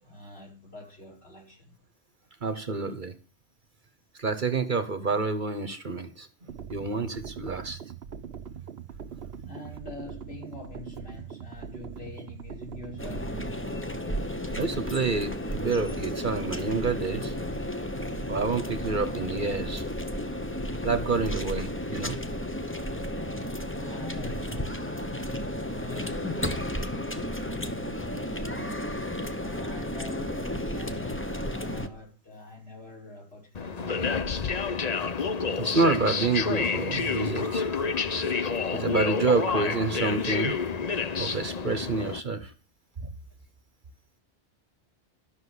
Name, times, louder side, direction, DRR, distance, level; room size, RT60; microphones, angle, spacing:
voice 1, 0.0-1.8 9.4-13.5 23.7-34.3, left 2 dB, 65° left, 6.1 m, -45 dB
voice 2, 2.4-3.1 4.2-6.3 6.7-7.8 14.6-17.3 18.3-19.9 20.8-22.2 35.6-38.3 38.7-40.6 41.2-42.5 43.0-43.1, right 4 dB, 45° right, 1.2 m, -28 dB
sound 1, 6.5-13.5, right 7 dB, 65° right, 1.0 m, -41 dB
sound 2, 13.0-31.9, left 1 dB, 10° left, 0.9 m, -33 dB
sound 3, 33.5-42.2, left 5 dB, 40° left, 0.8 m, -29 dB
13.0 x 6.4 x 8.1 m
omnidirectional pair, 1.2 m